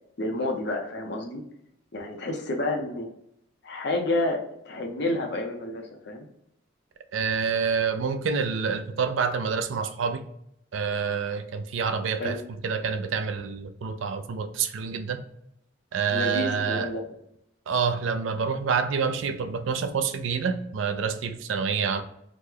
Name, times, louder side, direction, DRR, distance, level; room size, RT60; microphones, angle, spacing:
voice 1, 0.2-1.4 1.9-3.1 3.6-4.4 4.6-6.3 12.2-12.4 16.1-17.0, left 2 dB, 60° left, 2 dB, 0.7 m, -29 dB
voice 2, 7.1-10.2 10.7-12.4 12.6-15.2 15.9-16.9 17.7-22.0, right 6 dB, 80° right, 9 dB, 0.4 m, -27 dB
3.0 x 2.1 x 3.6 m, 0.77 s
head